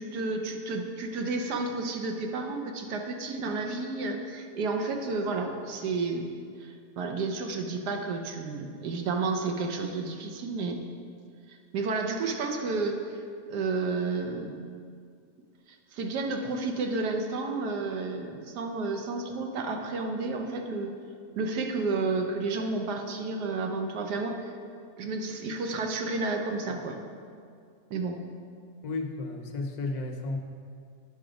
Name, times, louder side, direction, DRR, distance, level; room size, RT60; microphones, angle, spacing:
voice 1, 0.0-6.3 6.6-10.8 11.5-13.2 13.5-14.6 15.9-20.9 21.4-24.6 25.0-27.0 27.9-28.2, right 3 dB, 85° right, 3 dB, 1.4 m, -31 dB
voice 2, 28.8-30.4, left 3 dB, 70° left, 4 dB, 1.2 m, -33 dB
9.0 x 5.8 x 5.1 m, 2.2 s
omnidirectional pair, 1.7 m